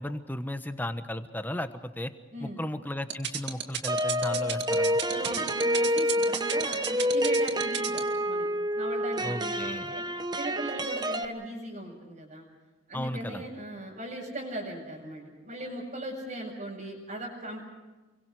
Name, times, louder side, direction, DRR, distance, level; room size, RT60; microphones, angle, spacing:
voice 1, 0.0-2.1 2.4-5.0 9.2-9.9 12.9-13.5, left 1 dB, 10° left, 9 dB, 1.2 m, -35 dB
sound 1, 3.1-8.0, right 9 dB, 55° right, 2.2 m, -31 dB
sound 2, 3.9-11.3, equal, 20° right, 1.0 m, -28 dB
voice 2, 5.1-8.5 8.7-10.0 10.3-12.5 12.9-17.6, right 1 dB, 40° right, -6 dB, 5.9 m, -38 dB
30.0 x 23.0 x 4.9 m, 1.2 s
head